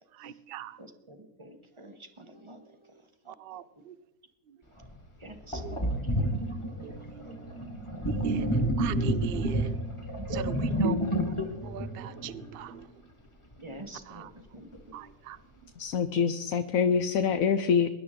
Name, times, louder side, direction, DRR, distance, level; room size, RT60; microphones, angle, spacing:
voice 1, 0.1-0.8 3.3-4.0 4.5-4.6 5.5-5.9 6.8-7.6 8.0-9.8 10.3-13.0 14.0-14.3 14.9-15.4, right 8 dB, 65° right, 16 dB, 0.6 m, -40 dB
voice 2, 0.8-2.7 3.3-3.4 5.2-6.2 6.6-6.7 7.2-7.3 10.2-10.3 10.7-10.8 13.6-14.3 14.5-14.8, right 1 dB, 20° right, 7 dB, 1.1 m, -47 dB
Sink (filling or washing), 4.8-4.9 5.5-12.8, right 1 dB, 20° left, 1.6 m, -30 dB
voice 3, 15.8-17.9, left 6 dB, 65° left, 10 dB, 1.0 m, -25 dB
23.5 x 11.0 x 3.7 m, 0.97 s
omnidirectional pair, 1.7 m